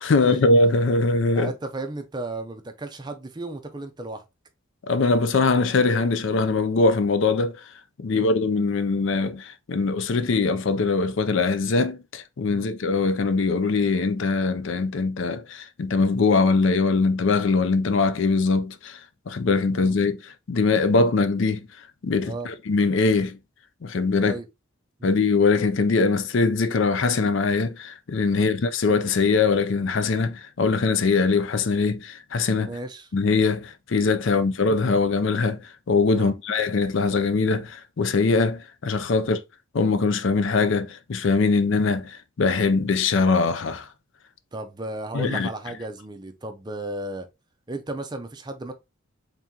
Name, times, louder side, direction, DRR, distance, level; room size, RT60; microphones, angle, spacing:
voice 1, 0.0-1.5 4.9-7.6 8.0-19.0 19.3-21.6 22.0-23.4 23.8-24.4 25.0-32.7 33.1-35.6 35.9-39.4 39.7-43.9 45.1-45.5, left 4 dB, 60° left, 0.4 m, -22 dB
voice 2, 1.3-4.2 8.1-8.3 12.5-12.7 19.7-19.9 22.2-22.5 24.2-24.5 25.0-25.2 28.3-28.5 32.6-33.1 34.3-34.4 36.1-36.3 39.2-39.3 41.4-41.5 44.5-47.3 47.7-48.7, right 2 dB, 20° right, 0.4 m, -35 dB
3.6 x 2.9 x 3.6 m
head